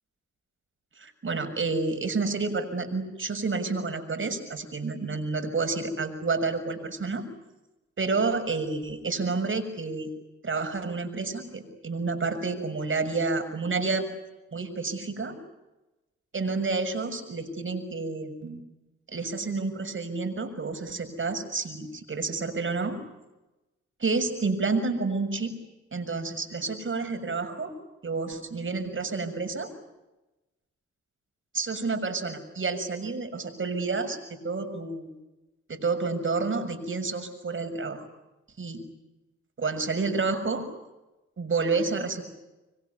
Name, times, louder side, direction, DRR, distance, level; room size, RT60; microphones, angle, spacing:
voice 1, 1.0-7.2 8.0-10.1 10.4-14.1 14.5-15.4 16.3-18.6 19.1-23.0 24.0-25.5 25.9-27.7 28.0-29.7 31.5-35.2 35.7-38.1 38.6-38.8 39.6-40.6 41.4-42.2, right 4 dB, 45° right, 8 dB, 6.8 m, -29 dB
26.5 x 23.0 x 9.6 m, 1.0 s
supercardioid pair, 55°, 29 cm